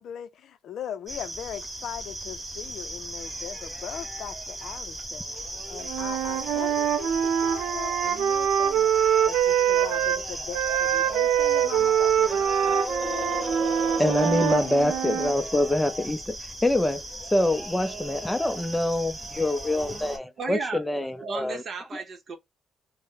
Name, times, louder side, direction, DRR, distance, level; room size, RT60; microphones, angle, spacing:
voice 1, 0.0-8.9 9.2-12.3 12.6-13.5, left 9 dB, 70° left, 0.4 m, -40 dB
sound 1, 1.1-20.2, right 1 dB, 15° right, 1.1 m, -36 dB
Wind instrument woodwind instrument, 5.8-10.2 10.5-15.3, right 9 dB, 85° right, 0.4 m, -24 dB
voice 2, 14.0-16.4 16.6-17.0 17.3-21.6 21.9-22.0, left 1 dB, 10° left, 0.5 m, -25 dB
voice 3, 20.4-22.4, right 4 dB, 50° right, 0.7 m, -35 dB
2.7 x 2.1 x 3.6 m
cardioid pair, 90°, 0 cm